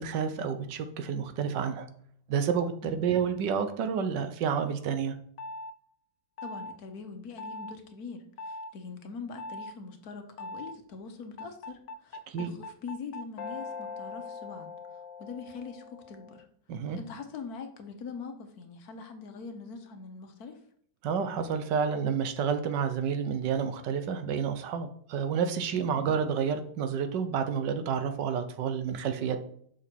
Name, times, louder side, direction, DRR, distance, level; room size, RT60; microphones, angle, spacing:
voice 1, 0.0-1.9 2.3-5.1 12.3-12.6 16.7-17.0 21.0-29.4, right 6 dB, 80° right, 9 dB, 1.5 m, -29 dB
sound 1, 5.4-5.7 6.4-6.8 7.4-7.8 8.4-8.7 9.4-9.7 10.4-10.8 11.4-16.5, left 3 dB, 80° left, 1.3 m, -41 dB
voice 2, 6.4-16.5 17.0-20.6 25.7-25.8, left 5 dB, 60° left, 6 dB, 1.4 m, -43 dB
6.3 x 6.2 x 4.5 m, 0.63 s
omnidirectional pair, 1.9 m